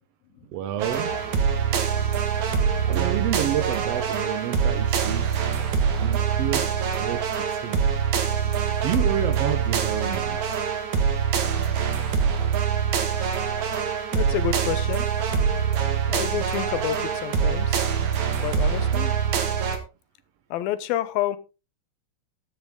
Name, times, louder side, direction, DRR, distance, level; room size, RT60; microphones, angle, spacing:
voice 1, 0.5-1.1 2.9-5.5 6.0-7.8 8.5-10.6 11.8-11.9, right 10 dB, 90° right, 1.4 m, -30 dB
sound 1, 0.8-19.8, right 7 dB, 60° right, 2.9 m, -24 dB
voice 2, 14.1-15.1 16.1-17.9 18.4-19.1 20.5-21.4, left 12 dB, 90° left, 2.7 m, -29 dB
13.0 x 9.6 x 3.7 m
omnidirectional pair, 4.1 m